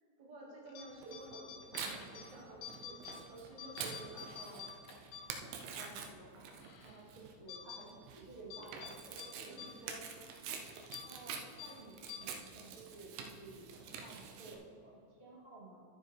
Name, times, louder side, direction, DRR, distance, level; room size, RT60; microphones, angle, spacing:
voice 1, 0.2-1.5 1.9-3.0 3.3-4.3 9.4-10.1, right 2 dB, 60° right, -4 dB, 3.5 m, -51 dB
sound 1, 0.7-0.9 1.1-2.3 2.6-3.2 3.5-5.7 6.1-6.2 6.6-7.0 7.5-7.8 8.5-8.9 9.2-9.3 9.6-9.7 10.0-10.2 10.8-11.0 11.6-11.7 12.1-12.2, left 7 dB, 80° left, 3.6 m, -48 dB
Tearing, 1.0-14.5, right 6 dB, 85° right, 3.2 m, -47 dB
voice 2, 5.7-6.5 6.8-10.3 11.0-15.8, right 2 dB, 15° right, -8 dB, 2.3 m, -54 dB
11.5 x 11.5 x 3.3 m, 2.5 s
omnidirectional pair, 5.2 m